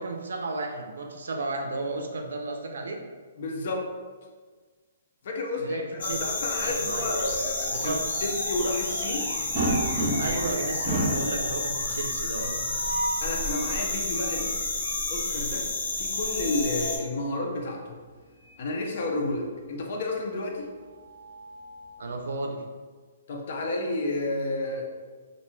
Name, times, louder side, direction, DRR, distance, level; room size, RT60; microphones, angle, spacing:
voice 1, 0.0-3.0 5.6-6.3 6.6-7.4 7.7-8.0 10.2-12.5 13.1-13.2 22.0-22.6, right 2 dB, 85° right, 3 dB, 0.4 m, -33 dB
voice 2, 3.4-3.9 5.2-7.9 8.2-9.3 13.2-14.5 15.0-15.7 16.0-18.0 18.6-20.7 23.3-25.0, left 2 dB, 50° left, 1 dB, 0.4 m, -31 dB
sound 1, 6.0-17.0, left 2 dB, 65° left, 0.9 m, -30 dB
Animal, 7.2-15.3, right 1 dB, 60° right, 0.8 m, -40 dB
sound 2, 9.5-10.5 10.8-11.3 12.6-13.3 16.0-17.0 18.4-18.6 19.0-19.1 20.6-21.9, right 1 dB, 20° right, 0.6 m, -31 dB
2.5 x 2.1 x 3.0 m, 1.5 s
hypercardioid pair, 165°, 0 cm